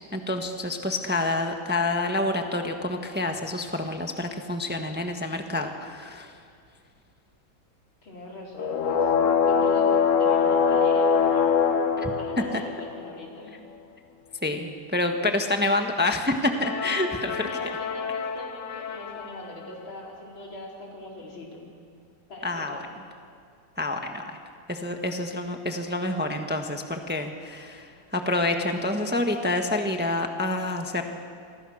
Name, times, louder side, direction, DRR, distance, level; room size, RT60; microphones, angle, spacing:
voice 1, 0.1-6.3 12.0-12.1 14.4-17.4 22.4-22.8 23.8-24.2 24.7-31.0, left 2 dB, 5° right, 4 dB, 1.3 m, -28 dB
voice 2, 8.0-11.5 12.2-13.6 17.4-21.7 22.3-23.0, left 1 dB, 80° left, -2 dB, 5.3 m, -42 dB
sound 1, 8.5-13.2 16.5-19.4, left 6 dB, 50° left, 1.2 m, -24 dB
28.0 x 24.5 x 6.5 m, 2.2 s
omnidirectional pair, 2.1 m